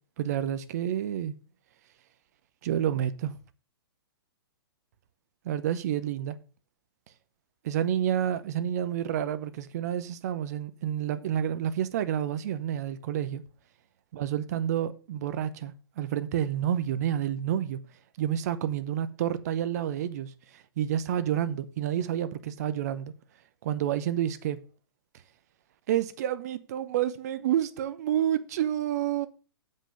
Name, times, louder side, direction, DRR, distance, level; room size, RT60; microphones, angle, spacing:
voice 1, 0.2-1.3 2.6-3.3 5.4-6.4 7.6-13.4 14.1-17.8 18.2-23.1 23.6-24.6 25.9-29.3, right 10 dB, 40° right, 0.8 m, -29 dB
7.5 x 5.4 x 6.4 m
figure-of-eight pair, 115°, 13 cm